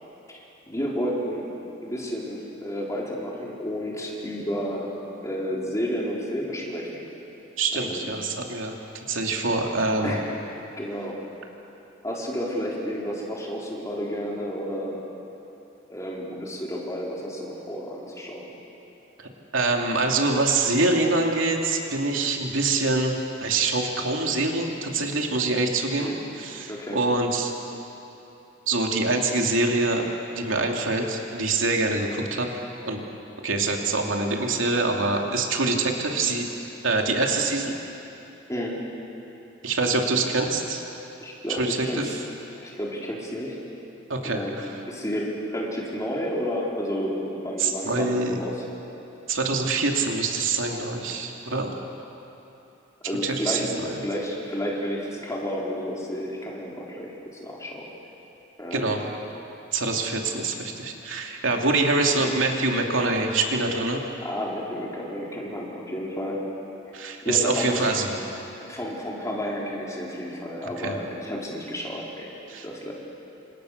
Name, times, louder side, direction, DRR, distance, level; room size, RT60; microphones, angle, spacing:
voice 1, 0.7-1.5 1.8-4.9 5.2-7.0 7.7-8.1 10.0-10.4 10.8-11.2 12.0-15.0 15.9-18.5 26.0-26.2 26.7-27.0 38.5-38.8 41.2-42.2 42.6-43.6 44.2-48.6 53.0-53.7 54.0-57.1 57.4-57.9 58.6-58.9 64.2-66.5 67.2-67.9 68.6-72.3 72.6-72.9, equal, 15° left, -3 dB, 4.3 m, -31 dB
voice 2, 7.6-8.8 9.1-10.1 19.2-27.5 28.7-30.1 30.3-32.5 32.9-33.0 33.4-36.5 36.8-37.7 39.6-40.8 41.5-42.2 44.1-44.7 47.6-48.4 49.3-51.7 53.2-54.0 58.7-59.0 59.7-64.0 66.9-68.2 70.8-71.0 72.5-72.7, right 3 dB, 75° right, 1 dB, 2.9 m, -25 dB
29.5 x 26.5 x 6.7 m, 3.0 s
head